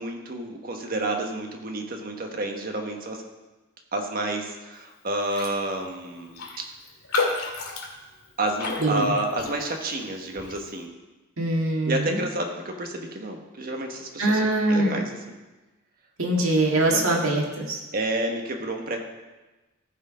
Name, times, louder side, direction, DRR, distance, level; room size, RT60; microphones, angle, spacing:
voice 1, 0.0-3.2 3.9-6.6 8.4-10.9 11.8-15.4 16.8-17.2 17.9-19.0, right 2 dB, 45° right, 3 dB, 1.2 m, -30 dB
Raindrop, 5.3-5.6 5.9-6.0 6.3-9.9 10.4-10.6, left 3 dB, 90° left, 2.2 m, -31 dB
voice 2, 11.4-12.2 14.2-14.9 16.2-17.8, right 1 dB, 70° right, -1 dB, 1.9 m, -23 dB
14.0 x 4.7 x 5.0 m, 1.1 s
head